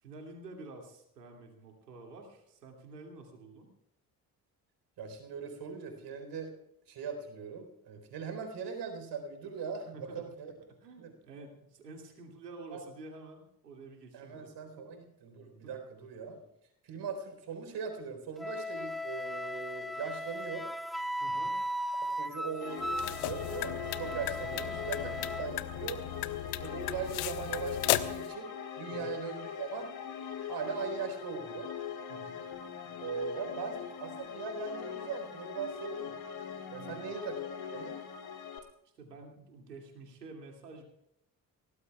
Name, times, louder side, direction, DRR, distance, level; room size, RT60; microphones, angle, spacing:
voice 1, 0.0-3.7 9.9-10.3 10.8-14.5 14.8-14.9 15.6-15.7 21.2-21.5 25.0-25.2 28.9-29.1 32.1-32.4 36.8-37.1 39.0-40.8, right 3 dB, 85° right, 2 dB, 2.6 m, -49 dB
voice 2, 5.0-6.5 6.9-10.5 11.0-11.1 12.7-12.8 14.1-16.4 16.8-20.7 22.0-25.1 25.4-26.0 26.6-28.5 28.8-29.9 30.5-31.7 33.0-36.2 36.7-37.4 37.6-38.0, right 5 dB, 55° right, 5 dB, 4.2 m, -40 dB
Wind instrument woodwind instrument, 18.4-25.5, equal, ahead, 0.5 m, -37 dB
sound 1, 22.6-38.6, left 8 dB, 50° left, 2.6 m, -41 dB
sound 2, 22.8-28.3, left 16 dB, 70° left, 0.9 m, -35 dB
23.5 x 18.0 x 2.4 m, 0.76 s
figure-of-eight pair, 45°, 47 cm